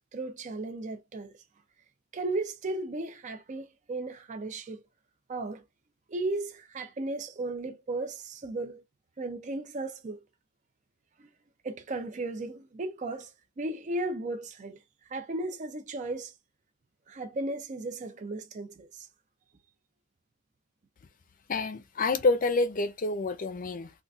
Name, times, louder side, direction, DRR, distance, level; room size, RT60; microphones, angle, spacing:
voice 1, 0.1-1.3 2.1-4.8 5.3-5.6 6.1-8.8 9.2-10.2 11.6-14.8 15.1-16.3 17.1-19.1, right 2 dB, 35° right, 0.4 m, -35 dB
voice 2, 21.5-23.9, left 3 dB, 40° left, 0.5 m, -28 dB
3.8 x 2.4 x 2.3 m
head